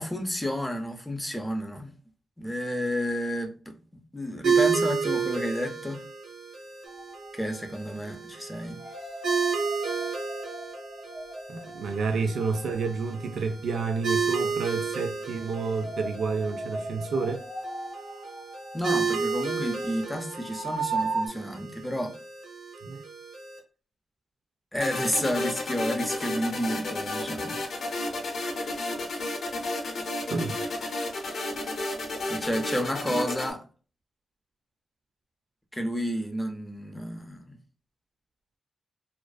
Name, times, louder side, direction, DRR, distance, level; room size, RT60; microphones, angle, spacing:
voice 1, 0.0-1.9 2.4-6.0 7.3-8.8 18.7-22.1 24.7-27.6 32.3-33.6 35.7-37.6, equal, 5° left, 0.4 m, -31 dB
sound 1, 4.4-23.6, right 5 dB, 85° right, 0.8 m, -32 dB
sound 2, 6.9-7.6 8.7-13.3 15.3-21.3, right 3 dB, 35° right, 0.7 m, -37 dB
voice 2, 11.5-17.4 22.8-23.0 30.3-30.5, right 4 dB, 65° right, 0.3 m, -30 dB
sound 3, 24.8-33.5, left 2 dB, 55° left, 0.5 m, -32 dB
2.4 x 2.3 x 2.3 m
wide cardioid pair, 130°, 0 cm